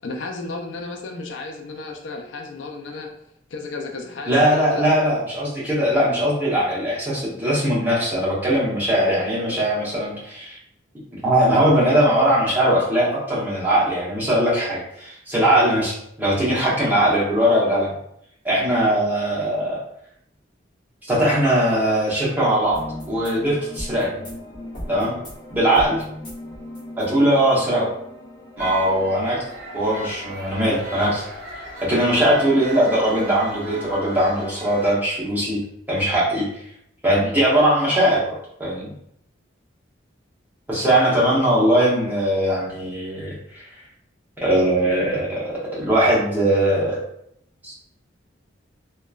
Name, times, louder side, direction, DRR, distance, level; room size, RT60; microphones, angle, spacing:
voice 1, 0.0-3.1 3.5-4.9, left 3 dB, 80° left, 2 dB, 0.4 m, -33 dB
voice 2, 4.3-10.6 11.1-17.9 18.4-19.8 21.1-24.2 24.9-25.1 25.5-26.0 27.0-27.9 28.6-29.4 29.7-31.2 31.8-35.6 35.9-36.5 37.0-38.9 40.7-43.6 44.4-47.0 47.6-47.7, right 1 dB, 10° right, -7 dB, 0.7 m, -20 dB
sound 1, 22.7-30.6, left 1 dB, 25° left, 0.9 m, -38 dB
sound 2, 28.6-34.9, right 1 dB, 50° right, 0.7 m, -37 dB
2.8 x 2.3 x 2.3 m, 0.74 s
head